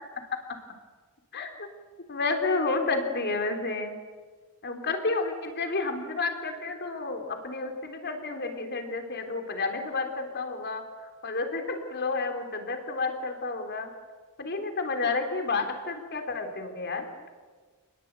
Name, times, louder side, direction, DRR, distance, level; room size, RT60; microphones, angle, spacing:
voice 1, 2.1-4.0 4.6-10.8 11.2-13.9 14.4-17.1, left 3 dB, 50° left, 5 dB, 3.8 m, -30 dB
28.5 x 20.5 x 9.0 m, 1.5 s
head